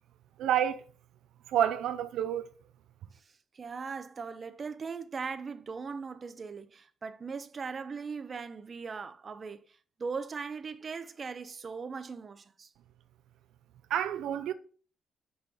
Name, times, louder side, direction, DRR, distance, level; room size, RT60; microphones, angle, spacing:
voice 1, 0.4-0.8 1.5-2.5 13.9-14.5, right 10 dB, 80° right, 0.6 m, -28 dB
voice 2, 3.5-9.6 10.0-12.7, right 5 dB, 40° right, 0.8 m, -39 dB
6.0 x 5.2 x 6.8 m
cardioid pair, 90°, 0 cm